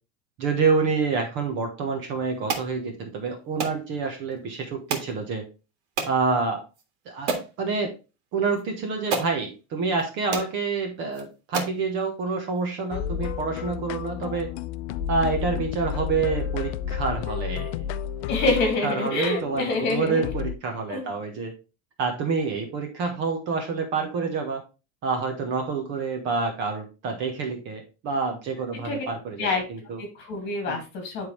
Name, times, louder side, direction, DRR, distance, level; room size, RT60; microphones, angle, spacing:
voice 1, 0.4-5.5 6.1-6.6 7.0-7.3 7.6-7.9 8.3-14.5 15.1-17.8 18.8-21.5 22.0-24.6 25.0-30.0 30.7-30.8, right 4 dB, 35° right, 4 dB, 1.3 m, -27 dB
sound 1, 2.5-2.7 3.6-3.8 4.9-5.1 6.0-6.2 6.8-6.9 7.3-7.5 8.6-8.7 9.1-9.3 10.0-10.1 10.3-10.5 11.1-11.2 11.5-11.8, right 4 dB, 85° right, 2.1 m, -29 dB
sound 2, 12.9-20.5, left 9 dB, 90° left, 0.6 m, -31 dB
voice 2, 18.3-20.2 20.9-21.1 28.8-29.0 29.4-29.6 30.0-31.3, left 3 dB, 35° left, 3 dB, 2.5 m, -26 dB
10.5 x 3.8 x 3.3 m, 0.30 s
supercardioid pair, 180°, 32 cm